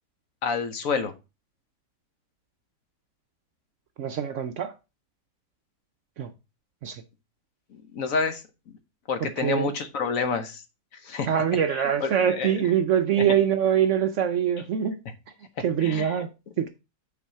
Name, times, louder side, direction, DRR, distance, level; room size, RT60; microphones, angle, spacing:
voice 1, 0.4-1.1 7.7-8.7 9.1-10.6 10.9-11.3 11.7-12.7 13.2-13.3 15.8-16.2, left 5 dB, 60° left, 1.2 m, -29 dB
voice 2, 4.0-4.7 6.2-6.3 6.8-7.0 9.2-9.7 11.3-15.0 15.6-16.3 16.6-16.7, right 9 dB, 65° right, 0.8 m, -24 dB
6.0 x 4.1 x 5.4 m
omnidirectional pair, 1.7 m